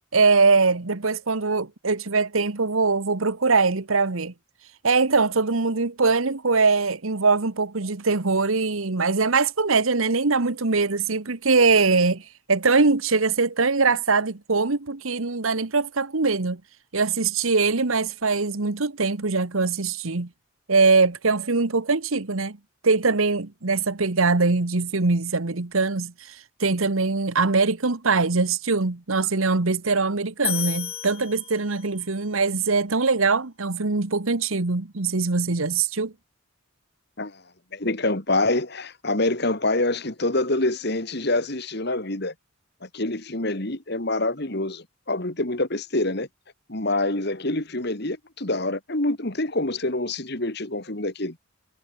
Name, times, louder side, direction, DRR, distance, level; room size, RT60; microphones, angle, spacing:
voice 1, 0.1-4.3 4.8-12.2 12.5-16.6 16.9-20.3 20.7-22.6 22.8-26.3 26.6-36.1, right 4 dB, 80° right, 1.3 m, -22 dB
sound 1, 30.4-32.1, left 11 dB, 30° left, 0.9 m, -32 dB
voice 2, 37.7-42.3 42.8-46.3 46.7-51.4, left 2 dB, 50° left, 2.4 m, -26 dB
head